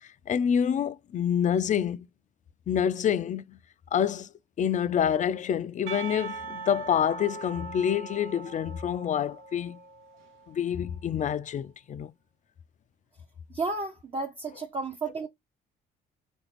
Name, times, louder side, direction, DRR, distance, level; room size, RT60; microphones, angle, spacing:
voice 1, 0.3-2.1 2.7-3.6 3.9-4.3 4.6-9.8 10.5-12.1, left 8 dB, 35° left, 0.4 m, -27 dB
Percussion, 5.9-10.7, right 5 dB, 75° right, 0.8 m, -41 dB
voice 2, 13.5-15.3, right 3 dB, 25° right, 0.6 m, -32 dB
3.4 x 2.6 x 2.9 m
supercardioid pair, 65°, 21 cm